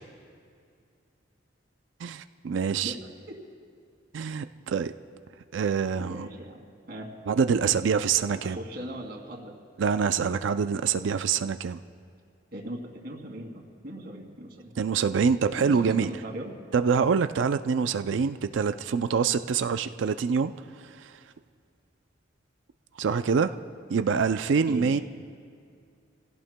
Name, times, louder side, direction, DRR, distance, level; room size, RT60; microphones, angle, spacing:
voice 1, 2.0-2.9 4.1-4.9 5.5-6.3 7.3-8.6 9.8-11.8 14.8-16.1 16.7-20.5 20.8-21.1 23.0-23.5 23.9-25.0, right 6 dB, 75° right, 10 dB, 0.4 m, -25 dB
voice 2, 6.0-7.1 8.4-9.5 12.5-14.7 15.6-16.6 24.7-25.0, right 1 dB, 55° right, 0 dB, 2.4 m, -39 dB
28.0 x 16.5 x 2.2 m, 2.3 s
head